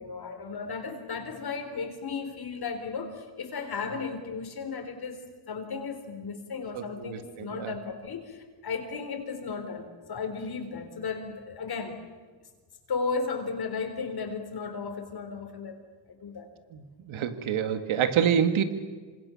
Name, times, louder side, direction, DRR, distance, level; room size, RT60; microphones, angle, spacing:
voice 1, 0.0-5.2 5.5-12.0 12.9-15.8 16.1-16.5, left 5 dB, 50° left, 4 dB, 4.2 m, -35 dB
voice 2, 6.7-7.7 16.7-16.8 17.1-18.6, right 8 dB, 80° right, 9 dB, 2.3 m, -27 dB
27.5 x 26.0 x 7.2 m, 1.4 s
cardioid pair, 115°, 47 cm